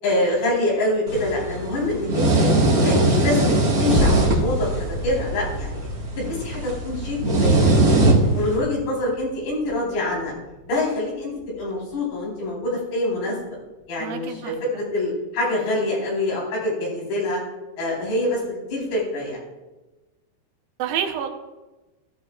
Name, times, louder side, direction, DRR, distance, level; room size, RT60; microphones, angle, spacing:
voice 1, 0.0-2.5 2.8-5.9 6.2-8.1 8.3-10.3 10.7-13.4 13.9-17.4 17.8-19.4, left 2 dB, 70° left, -5 dB, 6.5 m, -25 dB
sound 1, 1.1-8.6, right 2 dB, 55° right, 1.0 m, -21 dB
sound 2, 3.9-12.5 13.0-13.1, equal, 45° left, 3.7 m, -30 dB
voice 2, 14.0-14.9 20.8-21.3, right 8 dB, 70° right, 4 dB, 2.4 m, -29 dB
14.5 x 14.0 x 2.5 m, 1.1 s
omnidirectional pair, 5.0 m